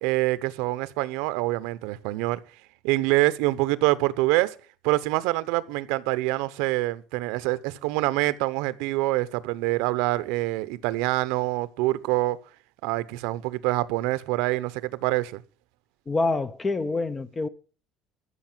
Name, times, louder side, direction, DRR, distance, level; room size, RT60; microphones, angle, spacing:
voice 1, 0.0-2.4 2.8-4.5 4.8-12.4 12.8-15.4, right 19 dB, 80° right, 0.9 m, -25 dB
voice 2, 16.1-17.5, left 3 dB, 15° left, 0.6 m, -26 dB
13.5 x 6.6 x 7.6 m
cardioid pair, 180°, 0 cm